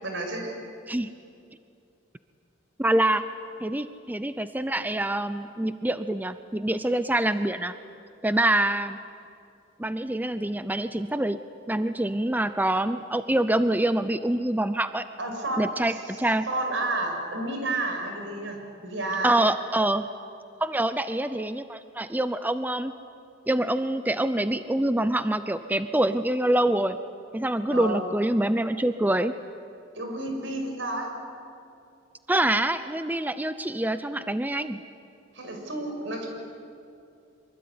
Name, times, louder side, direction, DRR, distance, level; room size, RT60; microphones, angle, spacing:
voice 1, 0.0-0.6 15.2-15.6 15.9-16.0 16.5-19.4 27.7-28.0 30.0-31.1 35.3-36.3, right 2 dB, 75° right, 3 dB, 6.2 m, -31 dB
voice 2, 2.8-3.2 3.6-7.7 8.2-9.0 9.8-11.4 11.7-15.0 15.6-16.4 19.2-20.1 20.6-22.9 23.5-27.0 27.3-29.3 32.3-34.8, right 1 dB, 10° right, 11 dB, 0.6 m, -25 dB
25.0 x 24.5 x 9.6 m, 2.5 s
head